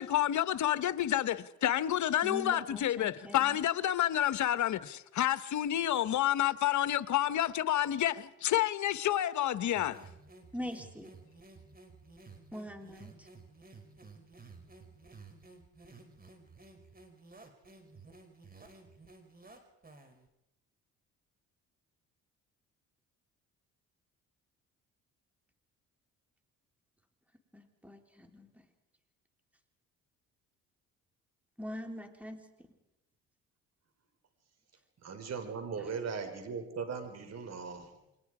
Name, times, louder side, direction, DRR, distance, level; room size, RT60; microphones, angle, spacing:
voice 1, 0.0-10.0, left 12 dB, 60° left, 1.1 m, -29 dB
voice 2, 2.2-3.6 10.5-11.1 12.5-13.3 27.5-28.5 31.6-32.4 35.8-35.9, left 1 dB, 5° right, 3.7 m, -43 dB
sound 1, 9.6-20.3, right 3 dB, 30° right, 4.2 m, -54 dB
voice 3, 35.0-37.9, right 5 dB, 50° right, 4.7 m, -38 dB
29.0 x 23.0 x 4.9 m
supercardioid pair, 80°, 32 cm